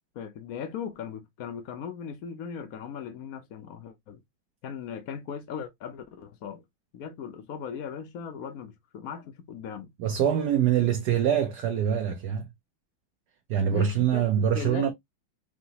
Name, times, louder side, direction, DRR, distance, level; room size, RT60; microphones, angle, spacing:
voice 1, 0.2-4.2 4.6-6.6 6.9-9.9 13.7-14.3 14.5-14.9, left 7 dB, 60° left, 0.9 m, -38 dB
voice 2, 10.0-12.4 13.5-14.9, right 9 dB, 65° right, 1.1 m, -24 dB
4.9 x 2.9 x 2.8 m
omnidirectional pair, 2.2 m